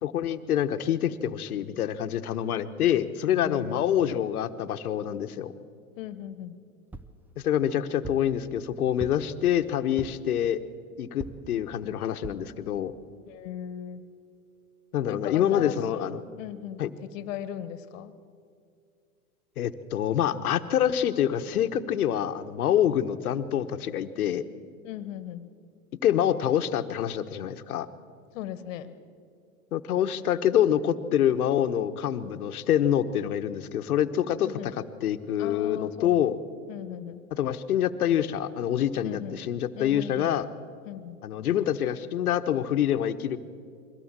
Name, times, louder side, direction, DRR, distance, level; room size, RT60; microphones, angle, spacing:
voice 1, 0.0-5.5 7.4-10.6 11.0-12.9 14.9-16.2 16.8-16.9 19.6-24.4 26.0-27.9 29.7-36.3 37.3-40.5 41.2-43.4, left 10 dB, 85° left, 10 dB, 1.2 m, -26 dB
voice 2, 3.4-4.2 6.0-6.6 13.3-14.0 15.1-16.8 17.1-18.1 24.8-25.5 28.3-28.9 34.4-34.7 35.4-36.2 36.7-37.2 39.0-39.4 39.7-40.3 40.8-41.2, left 10 dB, 60° left, 14 dB, 1.5 m, -38 dB
sound 1, 6.9-7.2 8.0-8.3 9.0-9.4 10.0-10.3 11.2-11.5 12.2-12.5 13.1-13.2 13.5-13.6, right 3 dB, 5° right, 0.6 m, -41 dB
22.5 x 16.0 x 7.5 m, 2.3 s
hypercardioid pair, 115°, 43 cm